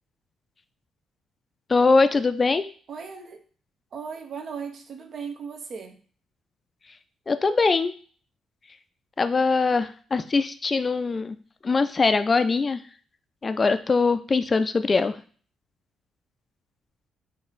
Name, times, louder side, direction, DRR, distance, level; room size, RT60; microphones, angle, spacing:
voice 1, 1.7-2.7 7.3-7.9 9.2-11.4 11.6-12.8 13.4-15.2, left 4 dB, 30° left, 10 dB, 0.4 m, -22 dB
voice 2, 2.9-3.4 3.9-6.0, right 6 dB, 55° right, 5 dB, 0.8 m, -37 dB
4.0 x 2.6 x 3.9 m, 0.42 s
cardioid pair, 90°, 0 cm